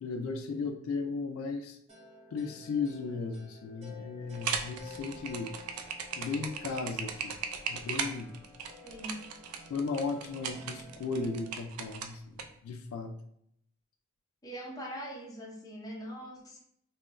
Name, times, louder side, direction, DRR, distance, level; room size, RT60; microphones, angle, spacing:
voice 1, 0.0-1.8 2.3-5.5 6.2-7.4 7.7-8.3 9.7-13.1, left 4 dB, 70° left, 5 dB, 0.3 m, -36 dB
sound 1, 1.9-11.5, left 3 dB, 30° right, 1.0 m, -52 dB
sound 2, 4.3-12.4, right 6 dB, 85° right, 0.4 m, -37 dB
voice 2, 8.8-9.2 14.4-16.6, equal, 15° left, -2 dB, 0.6 m, -42 dB
3.7 x 2.2 x 2.4 m, 0.71 s
head